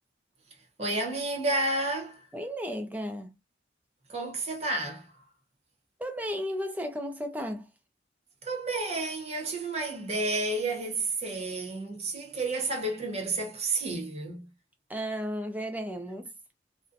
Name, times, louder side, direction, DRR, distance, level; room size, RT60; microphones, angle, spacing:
voice 1, 0.8-2.2 4.1-5.1 8.4-14.5, right 2 dB, 35° right, 0.8 m, -31 dB
voice 2, 2.3-3.4 6.0-7.7 14.9-16.3, equal, 10° right, 0.4 m, -34 dB
2.5 x 2.1 x 2.5 m
head